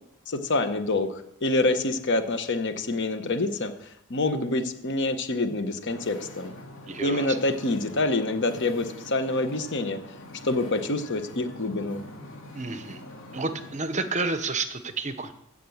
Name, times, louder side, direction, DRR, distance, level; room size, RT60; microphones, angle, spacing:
voice 1, 0.3-3.7 4.1-6.6 7.0-10.0 10.4-12.0, left 2 dB, 55° left, 9 dB, 1.1 m, -26 dB
Wind / Ocean, 5.8-13.7, left 1 dB, 75° left, 2.4 m, -45 dB
voice 2, 6.9-7.4 12.5-13.0 13.3-15.3, right 3 dB, 35° right, 10 dB, 0.9 m, -30 dB
16.0 x 5.4 x 7.1 m, 0.76 s
head